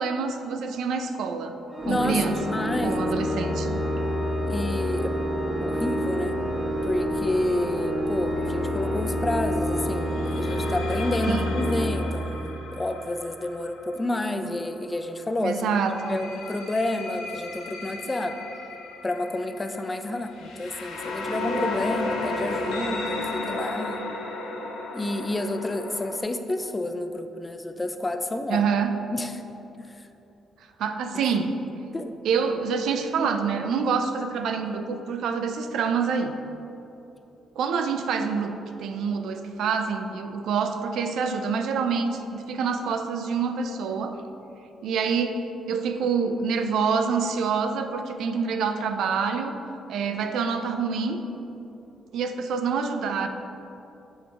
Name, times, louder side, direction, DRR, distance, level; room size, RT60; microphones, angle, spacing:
voice 1, 0.0-3.8 11.2-11.4 15.4-16.2 28.5-29.0 30.8-31.5 32.2-36.4 37.6-44.2 44.8-49.6 49.9-51.2 52.1-53.3, right 5 dB, 75° right, 7 dB, 0.4 m, -27 dB
Organ, 1.7-12.7, equal, 30° right, 1.4 m, -28 dB
voice 2, 1.8-3.1 4.5-5.2 5.6-6.4 6.8-15.6 16.1-18.4 19.0-24.0 24.9-28.7 29.1-29.4 29.8-30.1 31.2-31.3 31.9-32.1, left 1 dB, 20° left, 7 dB, 0.4 m, -29 dB
sound 1, 8.4-8.7 10.2-14.9 15.7-26.2, left 2 dB, 90° left, 0.7 m, -34 dB
7.0 x 3.7 x 4.7 m, 2.9 s
cardioid pair, 90°, 0 cm